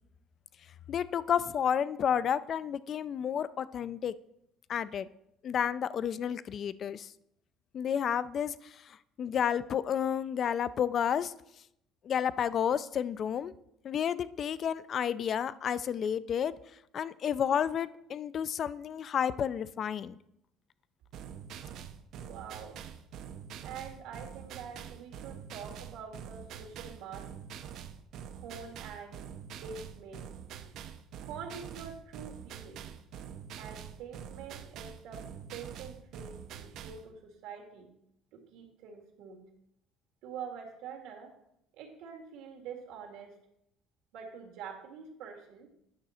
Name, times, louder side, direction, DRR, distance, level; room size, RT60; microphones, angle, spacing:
voice 1, 0.9-4.1 4.7-5.1 5.4-7.1 7.7-8.7 9.2-11.3 12.0-13.5 13.8-16.5 16.9-20.2, left 8 dB, 40° left, 17 dB, 0.3 m, -31 dB
sound 1, 21.1-37.1, right 8 dB, 55° right, 0.6 m, -45 dB
voice 2, 22.2-22.8 23.6-27.3 28.3-29.3 29.6-30.3 31.2-32.9 33.6-37.9 38.3-39.4 40.2-41.3 41.8-43.3 44.1-45.7, right 6 dB, 80° right, 1 dB, 1.9 m, -45 dB
9.5 x 6.0 x 4.2 m, 0.78 s
cardioid pair, 145°, 0 cm